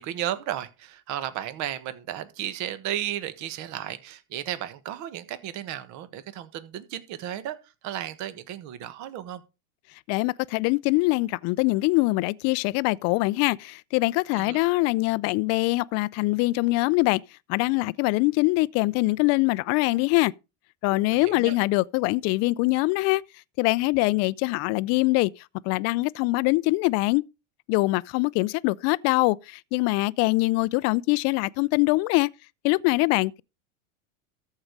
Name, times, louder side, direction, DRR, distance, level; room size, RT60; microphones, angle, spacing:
voice 1, 0.0-7.6 7.8-9.4 14.3-14.6 21.1-21.6, right 12 dB, 45° right, 1.4 m, -34 dB
voice 2, 10.1-17.2 17.5-20.3 20.8-23.2 23.6-25.3 25.6-27.3 27.7-32.3 32.6-33.4, left 22 dB, 40° left, 0.4 m, -23 dB
14.0 x 4.9 x 5.2 m
supercardioid pair, 120°, 40 cm